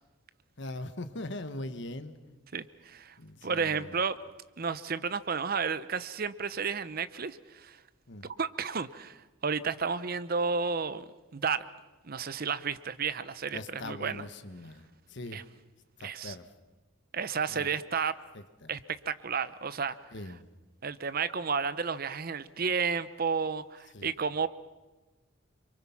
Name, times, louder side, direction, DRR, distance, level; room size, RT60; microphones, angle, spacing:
voice 1, 0.6-2.2 3.2-4.0 8.1-8.3 13.5-15.4 16.0-16.5 17.5-17.7 18.3-18.7 20.1-20.5 23.9-24.1, left 1 dB, 60° left, 10 dB, 1.3 m, -41 dB
voice 2, 2.5-3.1 3.4-4.2 4.6-7.8 8.2-11.0 11.3-11.6 12.0-14.2 15.3-15.4 16.0-16.3 17.1-18.1 18.7-20.0 20.8-24.5, right 5 dB, 45° right, 15 dB, 0.7 m, -32 dB
27.0 x 24.5 x 5.9 m, 1.2 s
head